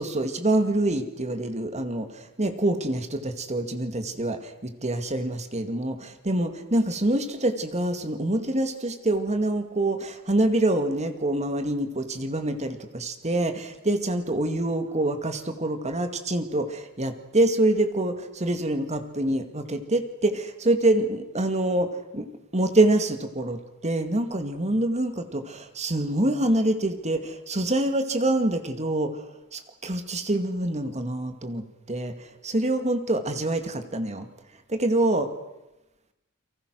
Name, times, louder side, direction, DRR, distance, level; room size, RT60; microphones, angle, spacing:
voice 1, 0.0-22.3 22.5-29.3 29.5-34.3 34.7-35.3, right 1 dB, 30° right, 7 dB, 2.2 m, -26 dB
29.5 x 24.0 x 6.4 m, 0.97 s
head